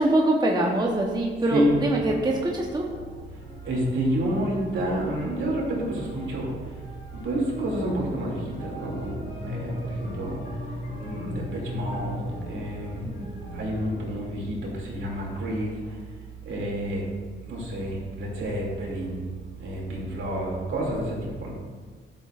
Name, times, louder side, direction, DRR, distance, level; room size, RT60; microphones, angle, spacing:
voice 1, 0.0-2.9 13.0-13.3, right 1 dB, 20° right, -1 dB, 0.9 m, -24 dB
sound 1, 1.5-14.1, left 1 dB, 70° left, 1.9 m, -38 dB
voice 2, 3.6-6.6 7.1-10.4 11.0-13.0 13.5-16.0 16.4-17.0 17.5-19.2 19.6-21.5, right 1 dB, 70° right, -3 dB, 2.6 m, -29 dB
11.5 x 6.9 x 2.5 m, 1.5 s
cardioid pair, 100°, 21 cm